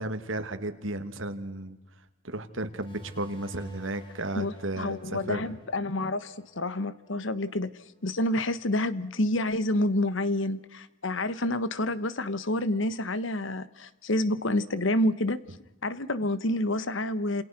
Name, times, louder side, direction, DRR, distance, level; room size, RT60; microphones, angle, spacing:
voice 1, 0.0-1.8 2.2-5.5, right 2 dB, 75° right, 2.3 m, -34 dB
sound 1, 2.8-8.0, right 1 dB, 25° left, 6.0 m, -50 dB
voice 2, 4.3-7.7 8.0-15.4 15.8-17.4, left 1 dB, 65° left, 1.3 m, -28 dB
30.0 x 28.0 x 6.1 m
head